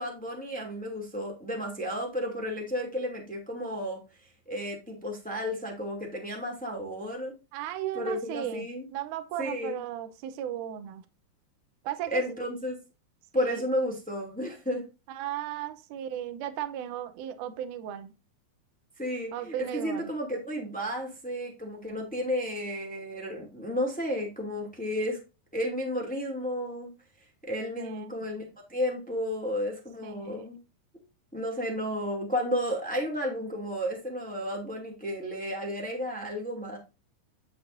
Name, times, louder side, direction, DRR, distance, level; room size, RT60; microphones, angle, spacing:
voice 1, 0.0-4.0 4.5-7.3 7.9-8.9 9.4-9.8 12.1-12.8 13.3-14.8 19.0-25.2 25.5-26.9 27.5-28.4 28.7-30.6 31.3-36.8, equal, 5° left, 0 dB, 1.7 m, -32 dB
voice 2, 7.5-11.0 11.8-12.2 13.3-13.6 15.1-18.1 19.3-20.2 27.8-28.2 30.0-30.4, right 11 dB, 70° right, 9 dB, 2.0 m, -36 dB
10.0 x 6.4 x 2.6 m, 0.28 s
omnidirectional pair, 4.2 m